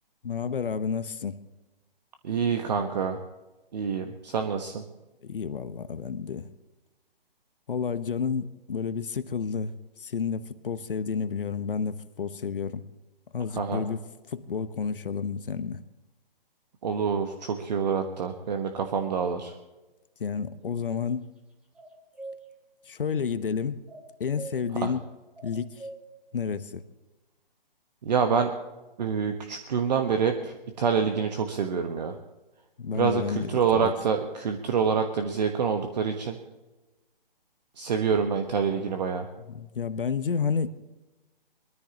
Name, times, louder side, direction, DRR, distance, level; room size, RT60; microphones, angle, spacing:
voice 1, 0.2-1.4 5.2-6.5 7.7-9.7 10.0-12.9 13.3-14.0 14.3-15.8 20.2-21.3 22.9-23.8 24.2-25.0 25.4-25.9 26.3-26.8 32.8-33.9 39.4-40.7, left 6 dB, 65° left, 1.0 m, -30 dB
voice 2, 2.2-3.2 3.7-4.8 13.6-13.8 16.8-19.5 24.8-24.9 28.0-28.5 29.0-32.2 32.9-36.4 37.8-39.3, right 6 dB, 45° right, 1.3 m, -27 dB
sound 1, 21.8-22.4 23.9-24.5 25.4-26.0, right 2 dB, 5° right, 1.1 m, -41 dB
22.0 x 14.0 x 3.0 m
figure-of-eight pair, 145°, 29 cm